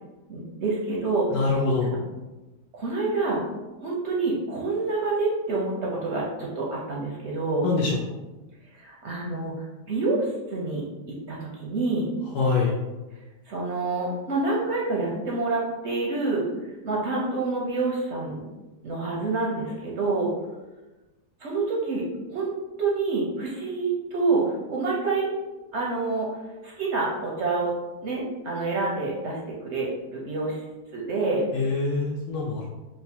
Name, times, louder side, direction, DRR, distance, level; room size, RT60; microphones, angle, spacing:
voice 1, 0.3-1.3 2.7-3.4 3.8-7.7 8.7-10.8 11.3-12.1 13.5-16.4 16.8-18.5 18.8-20.3 21.4-22.0 22.3-22.5 22.8-25.3 25.7-27.7 28.0-30.6 30.9-31.4, right 3 dB, 65° right, -4 dB, 0.7 m, -27 dB
voice 2, 1.3-2.0 7.6-8.2 12.3-12.8 31.5-32.7, left 4 dB, 90° left, -3 dB, 1.2 m, -24 dB
3.4 x 2.0 x 4.3 m, 1.1 s
omnidirectional pair, 1.8 m